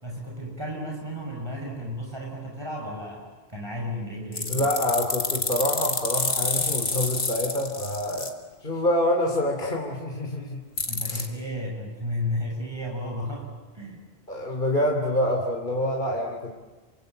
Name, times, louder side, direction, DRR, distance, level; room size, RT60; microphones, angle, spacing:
voice 1, 0.0-4.7 10.9-14.1, left 1 dB, 25° right, -1 dB, 5.8 m, -33 dB
sound 1, 4.3-8.3 10.8-11.3, left 3 dB, 75° left, 2.4 m, -28 dB
voice 2, 4.5-8.3 8.6-10.6 11.1-11.3 14.3-16.5, left 1 dB, 50° left, 0 dB, 3.3 m, -26 dB
28.5 x 25.5 x 8.0 m, 1.2 s
omnidirectional pair, 1.1 m